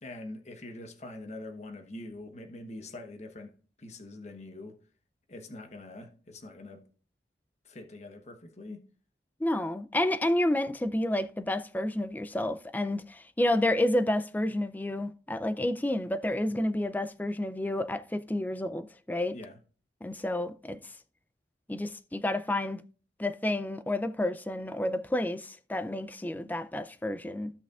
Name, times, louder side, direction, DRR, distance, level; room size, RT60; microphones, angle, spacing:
voice 1, 0.0-3.5 3.8-4.8 5.3-6.8 7.6-8.9 19.3-19.6, left 2 dB, 40° left, 1.0 m, -44 dB
voice 2, 9.4-19.4 20.0-20.8 21.7-22.8 23.2-27.5, left 1 dB, 10° left, 0.4 m, -30 dB
15.0 x 5.8 x 2.4 m
head